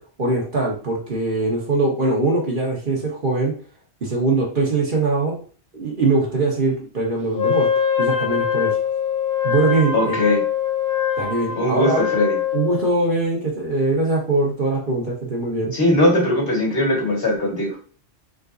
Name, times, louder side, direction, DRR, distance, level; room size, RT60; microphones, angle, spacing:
voice 1, 0.2-3.5 4.0-5.4 5.7-7.7 8.0-8.8 9.4-10.2 11.2-12.0 12.5-15.7, right 3 dB, 50° right, -2 dB, 1.3 m, -22 dB
Wind instrument woodwind instrument, 7.3-13.0, left 9 dB, 30° left, 0.4 m, -23 dB
voice 2, 9.9-10.4 11.6-12.4 15.7-17.8, left 1 dB, 60° left, -2 dB, 1.8 m, -19 dB
3.9 x 3.6 x 2.5 m, 0.40 s
omnidirectional pair, 1.1 m